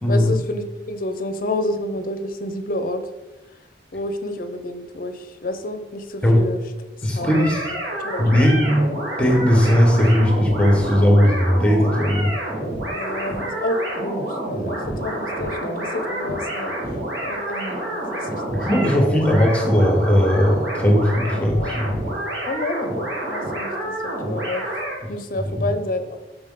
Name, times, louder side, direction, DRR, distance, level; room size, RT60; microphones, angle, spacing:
voice 1, 0.1-3.0 3.9-6.6 7.2-7.5 8.0-8.5 12.9-16.7 17.2-18.4 21.3-21.8 22.5-23.9 24.2-24.6 25.1-26.2, left 1 dB, 50° left, 8 dB, 0.6 m, -29 dB
voice 2, 7.0-7.7 8.2-8.9 9.2-12.3 18.5-21.9 25.5-25.7, equal, 5° left, 1 dB, 1.0 m, -17 dB
sound 1, 7.2-25.0, right 1 dB, 90° right, 2.1 m, -28 dB
6.1 x 5.1 x 3.7 m, 1.1 s
head